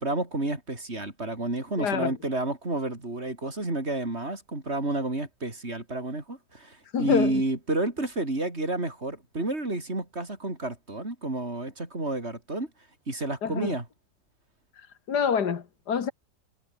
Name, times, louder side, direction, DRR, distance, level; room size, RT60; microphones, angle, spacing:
voice 1, 0.0-12.7 13.1-13.9, right 2 dB, 40° right, 4.9 m, -30 dB
voice 2, 1.8-2.1 6.9-7.3 13.4-13.8 14.8-16.1, left 7 dB, 85° left, 2.3 m, -27 dB
omnidirectional pair, 1.7 m